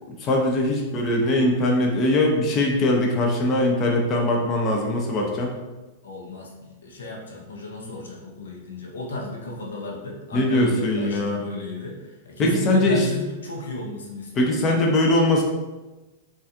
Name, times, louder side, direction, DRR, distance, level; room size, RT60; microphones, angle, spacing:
voice 1, 0.2-5.5 10.3-11.4 12.4-13.1 14.4-15.4, left 1 dB, 35° left, 0 dB, 0.6 m, -21 dB
voice 2, 6.0-14.7, left 1 dB, 90° left, -1 dB, 0.7 m, -34 dB
4.0 x 2.5 x 2.6 m, 1.1 s
hypercardioid pair, 120°, 0 cm